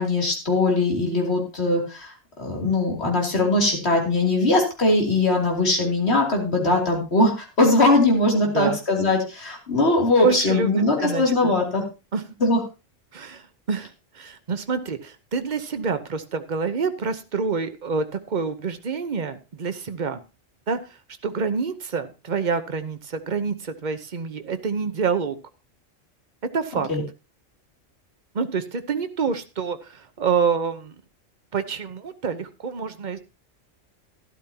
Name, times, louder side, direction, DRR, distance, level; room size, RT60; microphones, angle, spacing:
voice 1, 0.0-2.1 2.4-11.8 12.4-12.6 26.9-27.0, left 2 dB, 55° left, 0 dB, 3.2 m, -21 dB
voice 2, 10.2-11.5 12.1-12.2 13.1-20.2 20.7-20.8 21.2-25.4 26.5-26.9 28.3-31.0 31.5-33.2, right 5 dB, 40° right, 9 dB, 0.9 m, -27 dB
12.5 x 12.0 x 2.9 m, 0.29 s
omnidirectional pair, 1.3 m